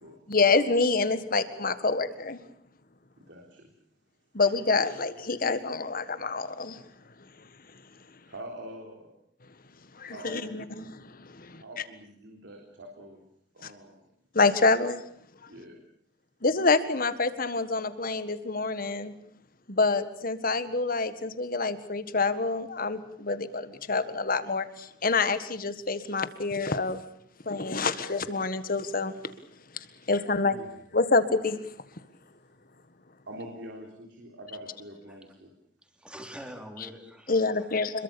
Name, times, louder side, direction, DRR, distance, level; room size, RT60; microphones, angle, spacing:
voice 1, 0.3-2.4 4.3-6.8 10.0-11.6 13.6-13.7 14.3-15.0 15.4-15.5 16.4-19.1 19.7-27.0 27.4-29.2 29.7-31.6 37.3-38.0, left 3 dB, 50° left, 1.7 m, -27 dB
voice 2, 3.3-3.7 8.3-9.1 10.0-10.9 11.5-13.2 13.5-14.0 15.5-15.8 30.0-30.1 30.5-30.7 33.3-35.5, right 1 dB, 90° right, 3.9 m, -45 dB
voice 3, 35.8-38.0, equal, 5° right, 3.5 m, -45 dB
26.5 x 22.5 x 7.1 m
head